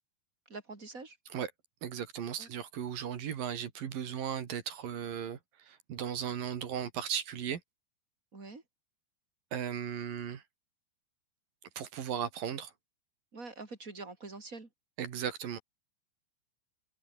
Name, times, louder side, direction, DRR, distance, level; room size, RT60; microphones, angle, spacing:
voice 1, 0.5-1.2 2.4-2.5 8.3-8.6 13.3-14.7, right 3 dB, 20° right, 3.8 m, -45 dB
voice 2, 1.8-7.6 9.5-10.4 11.8-12.7 15.0-15.6, right 9 dB, 60° right, 3.7 m, -36 dB
omnidirectional pair, 4.8 m